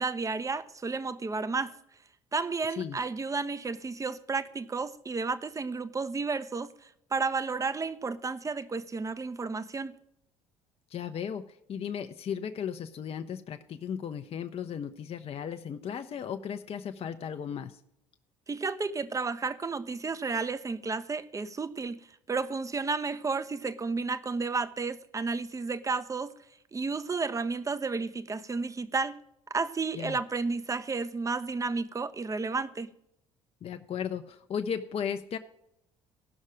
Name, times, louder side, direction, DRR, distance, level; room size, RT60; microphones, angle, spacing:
voice 1, 0.0-1.7 2.3-6.7 7.1-9.9 18.5-22.0 22.3-26.3 26.7-29.2 29.5-32.9, right 4 dB, 20° right, 0.7 m, -32 dB
voice 2, 10.9-17.8 29.9-30.2 33.6-35.4, left 8 dB, 35° left, 0.7 m, -35 dB
15.5 x 6.4 x 5.0 m
figure-of-eight pair, 55°, 16 cm